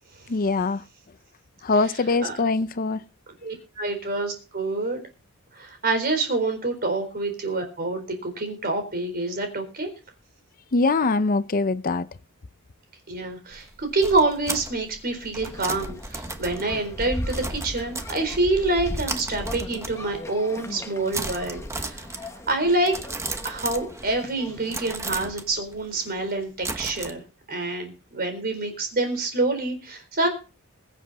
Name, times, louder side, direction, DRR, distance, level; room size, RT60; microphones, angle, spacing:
voice 1, 0.3-0.8 1.6-3.0 10.7-12.1, left 3 dB, 40° left, 0.6 m, -23 dB
voice 2, 3.4-5.1 5.5-9.9 13.1-22.0 22.5-22.9 23.4-27.2 27.5-30.3, right 2 dB, 45° right, 4.1 m, -26 dB
sound 1, 13.5-18.6 19.0-20.3 20.6-20.9 21.1-24.3 24.7-27.1, right 3 dB, 15° right, 1.0 m, -35 dB
sound 2, 15.3-24.9, left 1 dB, 10° left, 1.1 m, -37 dB
22.5 x 7.6 x 4.2 m
head